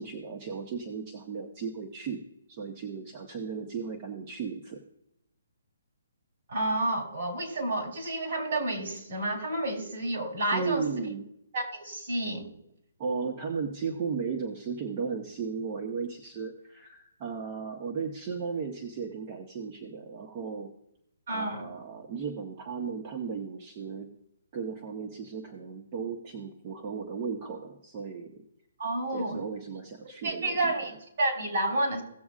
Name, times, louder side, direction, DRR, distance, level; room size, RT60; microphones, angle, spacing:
voice 1, 0.0-2.2 2.5-4.8 10.5-11.3 13.0-20.7 21.3-24.1 24.5-28.4 29.1-30.9, right 5 dB, 30° right, 1 dB, 1.1 m, -35 dB
voice 2, 6.5-11.0 11.5-12.5 21.3-21.7 28.8-29.4 30.2-32.0, right 1 dB, 60° right, 2 dB, 3.6 m, -30 dB
17.5 x 7.0 x 2.4 m, 0.80 s
hypercardioid pair, 155°, 0 cm